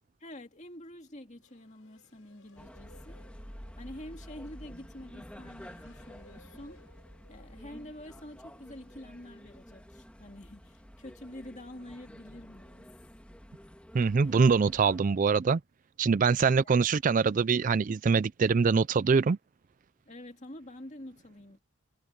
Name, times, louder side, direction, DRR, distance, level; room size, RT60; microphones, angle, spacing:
voice 1, 0.2-3.3 3.8-6.9 7.3-12.9 16.4-16.7 20.1-21.6, left 1 dB, 30° left, 2.5 m, -47 dB
sound 1, 1.4-9.6, left 2 dB, 70° left, 5.8 m, -63 dB
sound 2, 2.6-15.0, equal, 5° left, 2.3 m, -49 dB
voice 2, 13.9-15.6 16.0-19.4, right 5 dB, 35° right, 0.3 m, -24 dB
head